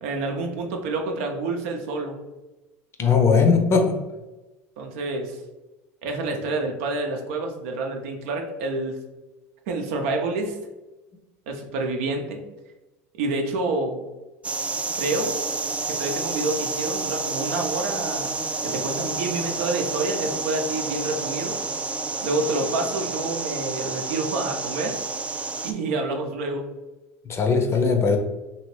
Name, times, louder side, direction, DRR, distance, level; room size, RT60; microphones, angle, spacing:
voice 1, 0.0-2.2 4.8-5.4 6.0-8.9 9.7-10.6 11.5-12.4 13.2-14.0 14.9-15.4 15.9-18.3 18.6-21.5 22.2-25.0 25.6-26.7, right 2 dB, 75° right, 3 dB, 0.6 m, -28 dB
voice 2, 3.0-4.0 27.3-28.2, left 5 dB, 35° left, 4 dB, 0.6 m, -19 dB
sound 1, 14.4-25.7, right 3 dB, 15° right, 0.3 m, -29 dB
2.9 x 2.7 x 3.1 m, 1.1 s
hypercardioid pair, 90°, 7 cm